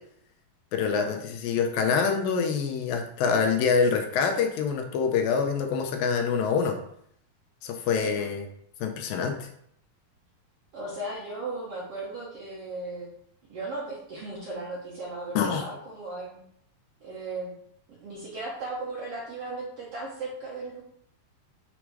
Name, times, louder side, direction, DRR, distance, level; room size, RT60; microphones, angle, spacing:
voice 1, 0.7-1.2 1.4-6.8 7.6-8.4 8.8-9.5 15.4-15.6, left 6 dB, 75° left, 4 dB, 2.2 m, -25 dB
voice 2, 8.0-8.3 10.7-13.1 13.5-16.4 17.0-17.5 17.9-20.8, right 2 dB, 70° right, -5 dB, 1.4 m, -36 dB
6.2 x 4.0 x 4.7 m, 0.70 s
omnidirectional pair, 4.5 m